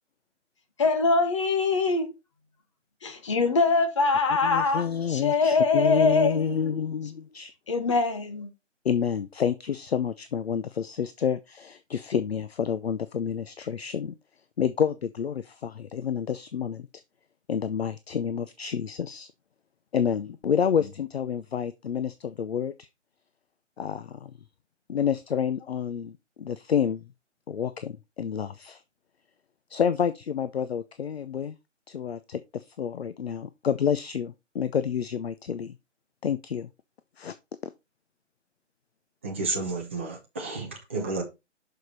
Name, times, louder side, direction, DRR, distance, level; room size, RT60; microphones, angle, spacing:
voice 1, 0.8-2.1 3.0-6.6 7.7-8.5, left 4 dB, 25° left, 0.9 m, -23 dB
voice 2, 4.4-7.5 8.8-14.1 14.6-16.9 17.5-19.3 19.9-22.9 23.8-24.3 24.9-27.1 27.5-28.8 29.7-31.6 31.9-35.8 36.2-36.7 37.2-37.3, left 7 dB, 55° left, 0.6 m, -29 dB
voice 3, 39.2-41.2, right 3 dB, 10° right, 0.7 m, -31 dB
6.5 x 4.9 x 4.1 m
figure-of-eight pair, 155°, 37 cm